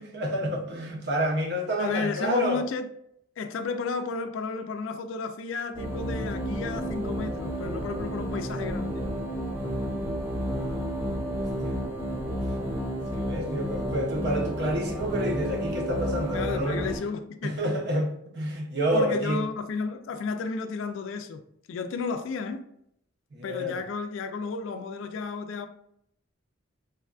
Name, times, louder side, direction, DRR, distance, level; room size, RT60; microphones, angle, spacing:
voice 1, 0.0-2.6 10.4-11.0 11.6-11.8 12.6-12.7 13.1-17.0 17.4-19.4 23.3-23.8, equal, 55° right, 0.6 m, -29 dB
voice 2, 1.8-2.9 3.4-9.0 16.3-17.6 18.9-21.4 21.7-22.6 23.4-25.7, left 4 dB, 70° left, 0.3 m, -33 dB
sound 1, 5.7-17.0, equal, 10° right, 0.7 m, -31 dB
3.3 x 2.2 x 2.3 m
head